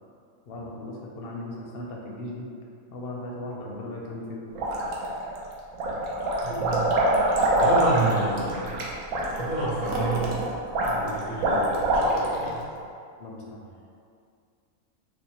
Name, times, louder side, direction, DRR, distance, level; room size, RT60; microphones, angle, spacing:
voice 1, 0.5-2.5 2.9-4.4 13.2-13.6, left 1 dB, 60° left, -2 dB, 0.6 m, -37 dB
sound 1, 4.5-5.4 5.7-12.4, right 1 dB, 85° right, 1.0 m, -24 dB
voice 2, 6.4-7.1 7.6-8.7 9.4-10.4 10.8-12.7, right 2 dB, 60° right, -9 dB, 0.9 m, -29 dB
4.7 x 2.1 x 2.7 m, 2.4 s
omnidirectional pair, 1.3 m